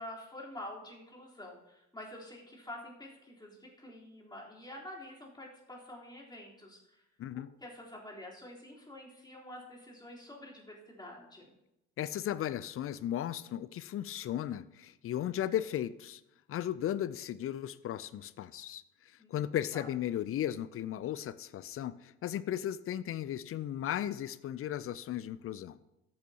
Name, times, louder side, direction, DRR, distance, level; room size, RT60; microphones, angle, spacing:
voice 1, 0.0-7.0 7.6-11.5 19.2-19.3 19.7-19.9, left 1 dB, 10° left, -4 dB, 3.7 m, -47 dB
voice 2, 12.0-16.2 16.5-18.8 19.3-25.8, left 11 dB, 35° left, 17 dB, 0.5 m, -36 dB
13.5 x 8.6 x 2.9 m, 0.90 s
hypercardioid pair, 60°, 38 cm